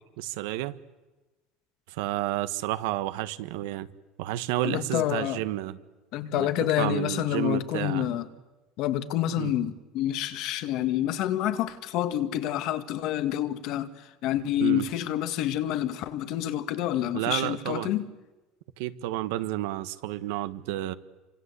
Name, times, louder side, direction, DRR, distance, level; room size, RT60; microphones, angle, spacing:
voice 1, 0.2-0.8 1.9-3.9 4.2-5.8 6.3-6.5 6.8-8.0 9.4-9.5 14.6-14.9 17.1-17.9 18.8-20.9, right 15 dB, 85° right, 1.3 m, -30 dB
voice 2, 4.6-5.4 6.1-8.3 8.8-18.1, left 12 dB, 55° left, 1.8 m, -28 dB
28.0 x 25.5 x 8.3 m
cardioid pair, 165°, 0 cm